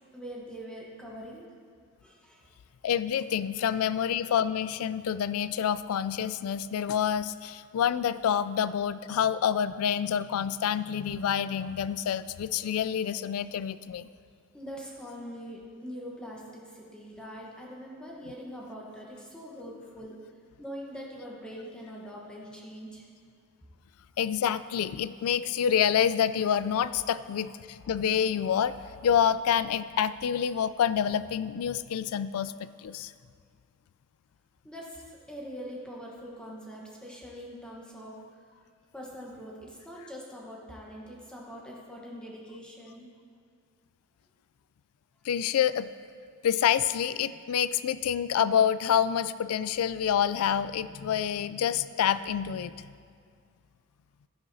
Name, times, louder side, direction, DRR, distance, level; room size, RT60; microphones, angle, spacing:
voice 1, 0.1-1.5 2.0-2.6 3.6-3.8 14.5-23.1 34.6-38.5 38.9-43.1, equal, 5° left, -3 dB, 1.0 m, -43 dB
voice 2, 2.8-14.1 24.2-33.1 45.2-45.9 46.4-52.9, left 8 dB, 75° left, 15 dB, 0.3 m, -27 dB
11.5 x 10.0 x 2.7 m, 2.1 s
head